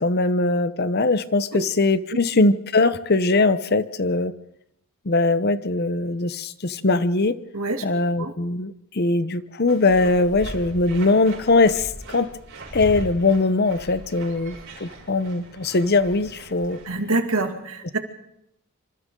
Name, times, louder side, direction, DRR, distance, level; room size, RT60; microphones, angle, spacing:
voice 1, 0.0-4.3 5.1-7.4 7.8-12.3 12.7-16.8, left 3 dB, 45° left, 14 dB, 0.8 m, -21 dB
voice 2, 7.5-7.8 8.2-8.3 16.8-18.0, right 2 dB, 75° right, 5 dB, 2.4 m, -25 dB
sound 1, 9.7-17.0, right 1 dB, 55° right, 6.7 m, -39 dB
27.0 x 26.0 x 3.8 m, 0.77 s
head